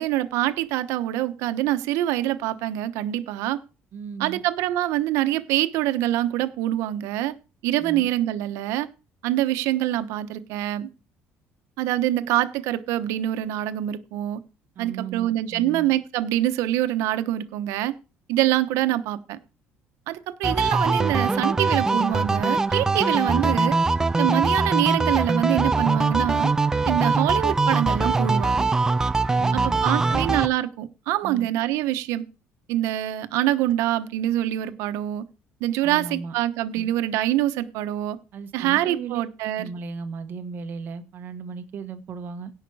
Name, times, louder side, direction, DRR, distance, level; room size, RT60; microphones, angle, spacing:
voice 1, 0.0-3.6 4.2-7.4 7.6-8.9 9.2-10.9 11.8-14.4 14.8-17.9 18.3-19.4 20.1-23.8 24.2-26.5 26.9-28.7 29.5-32.2 32.7-35.2 35.6-38.2 38.5-39.7, right 14 dB, 90° right, 1.0 m, -25 dB
voice 2, 3.9-4.4 7.8-8.1 14.7-15.9 29.3-30.3 31.2-31.5 35.8-36.3 36.7-36.8 38.3-39.2 39.6-42.5, right 6 dB, 45° right, 1.2 m, -36 dB
sound 1, 20.4-30.5, right 3 dB, 10° right, 0.5 m, -22 dB
16.5 x 5.8 x 4.8 m
cardioid pair, 155°, 5 cm